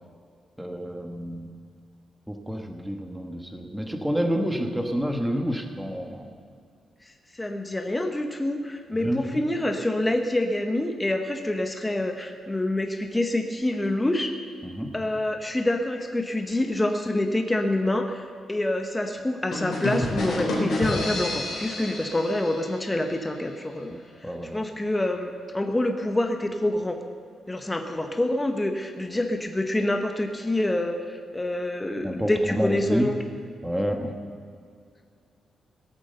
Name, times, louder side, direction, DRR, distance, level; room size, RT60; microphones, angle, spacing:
voice 1, 0.6-1.5 2.3-6.3 9.0-9.5 14.6-14.9 24.2-24.6 32.0-33.1 33.6-34.1, equal, 5° right, 4 dB, 1.3 m, -28 dB
voice 2, 7.3-14.3 14.9-23.9 24.5-27.0 27.5-33.2, left 1 dB, 10° left, 5 dB, 0.9 m, -26 dB
sound 1, 19.5-23.2, left 2 dB, 65° left, 3.3 m, -29 dB
17.0 x 8.7 x 6.8 m, 2.2 s
cardioid pair, 130°, 0 cm